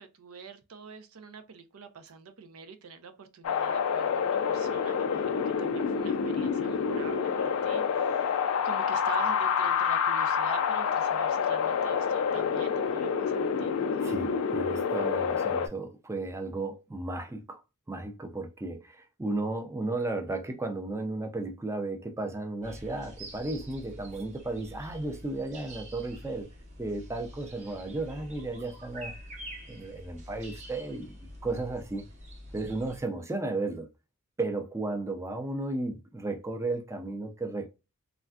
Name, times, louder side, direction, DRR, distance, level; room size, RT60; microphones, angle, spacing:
voice 1, 0.0-14.2, right 5 dB, 80° right, 0.5 m, -45 dB
Wind, 3.4-15.7, left 6 dB, 75° left, 0.4 m, -28 dB
voice 2, 14.0-17.6 17.9-26.5 26.8-29.2 29.7-31.1 31.4-32.0 32.5-33.9 34.4-37.7, right 2 dB, 15° right, 0.4 m, -34 dB
sound 1, 22.6-33.0, equal, 35° right, 0.7 m, -46 dB
3.3 x 2.4 x 2.2 m
head